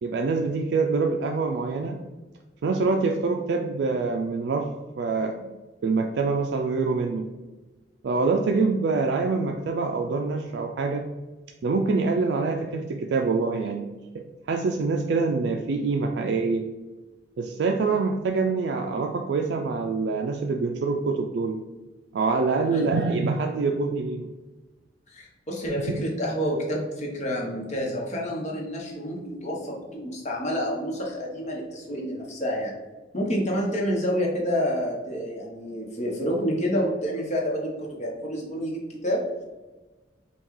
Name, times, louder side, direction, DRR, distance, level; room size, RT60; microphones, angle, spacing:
voice 1, 0.0-2.0 2.6-4.7 5.0-5.4 5.8-7.3 8.0-11.0 11.6-13.9 14.1-16.7 17.4-21.6 22.1-24.3, right 4 dB, 70° right, 2 dB, 0.3 m, -25 dB
voice 2, 25.1-32.8 33.1-39.2, equal, 40° left, -2 dB, 0.9 m, -28 dB
5.4 x 2.3 x 3.1 m, 1.2 s
head